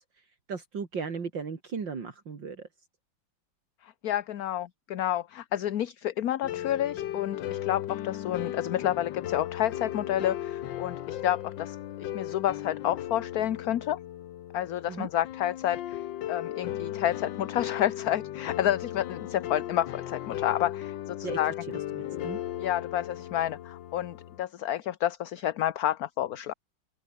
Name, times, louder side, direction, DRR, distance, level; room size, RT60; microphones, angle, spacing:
voice 1, 0.5-2.7 14.9-15.1 21.2-21.4 21.7-22.4, right 5 dB, 65° right, 3.3 m, -36 dB
voice 2, 3.8-14.0 14.5-16.0 16.3-21.5 22.6-26.5, left 12 dB, 55° left, 1.2 m, -30 dB
sound 1, 6.4-24.4, left 12 dB, 75° left, 1.5 m, -36 dB
omnidirectional pair, 2.1 m